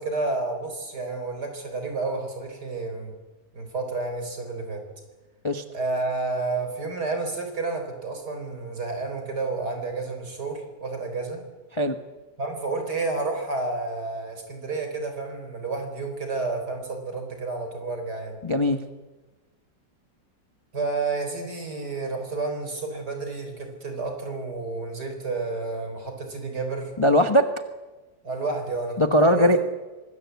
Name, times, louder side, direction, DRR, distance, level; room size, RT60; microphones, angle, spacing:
voice 1, 0.0-3.1 3.5-4.8 5.7-11.4 12.4-18.4 20.7-26.9 28.2-29.0 29.2-29.7, right 3 dB, 60° right, 5 dB, 4.8 m, -30 dB
voice 2, 18.4-18.8 27.0-27.6 29.0-29.7, equal, 20° left, 7 dB, 0.9 m, -20 dB
25.0 x 20.5 x 8.2 m, 1.2 s
omnidirectional pair, 2.0 m